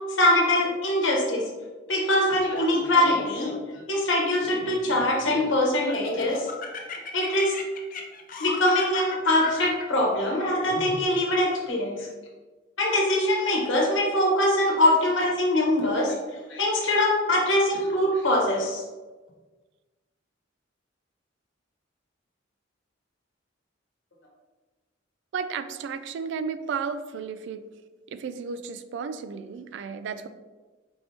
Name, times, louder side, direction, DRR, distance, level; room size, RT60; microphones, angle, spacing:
voice 1, 0.1-1.4 1.9-3.5 3.9-6.5 7.1-7.5 8.4-12.1 12.8-16.1 16.5-18.8, left 1 dB, 85° left, -2 dB, 1.1 m, -23 dB
Laughter, 2.5-3.8 4.4-5.5 5.9-11.0, left 3 dB, 45° left, 0.5 m, -36 dB
voice 2, 25.3-27.6 28.1-30.3, right 6 dB, 65° right, 10 dB, 0.3 m, -33 dB
4.4 x 3.2 x 2.8 m, 1.3 s
head